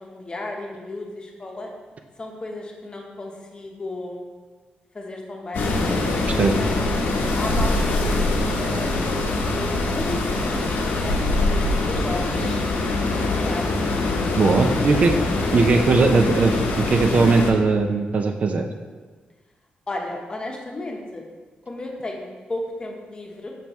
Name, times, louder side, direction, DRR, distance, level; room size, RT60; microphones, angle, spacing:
voice 1, 0.0-1.7 2.2-4.2 4.9-5.7 6.2-6.8 7.4-9.2 9.5-13.9 14.6-15.0 15.4-15.6 19.9-21.2 21.7-23.5, left 2 dB, 30° left, 1 dB, 0.9 m, -34 dB
sound 1, 5.5-17.5, left 2 dB, 90° left, 0.8 m, -23 dB
voice 2, 14.4-15.1 15.5-18.7, right 4 dB, 45° right, 5 dB, 0.4 m, -19 dB
5.9 x 5.3 x 3.1 m, 1.4 s
cardioid pair, 110°, 3 cm